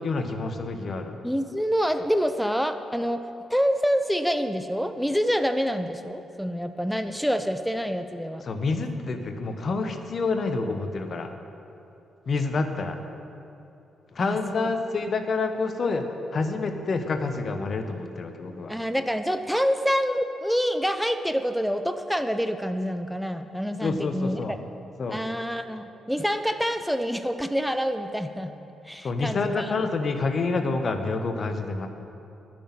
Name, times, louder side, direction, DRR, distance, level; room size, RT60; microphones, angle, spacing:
voice 1, 0.0-1.2 8.4-11.3 12.3-13.0 14.1-16.0 16.3-18.7 23.8-24.6 25.0-25.2 29.0-31.9, left 3 dB, 50° left, 7 dB, 0.9 m, -28 dB
voice 2, 1.2-3.2 3.5-8.4 14.2-14.7 18.7-24.6 25.1-28.5 28.8-29.8, equal, ahead, 8 dB, 0.6 m, -27 dB
10.0 x 6.2 x 8.8 m, 2.8 s
hypercardioid pair, 45°, 0 cm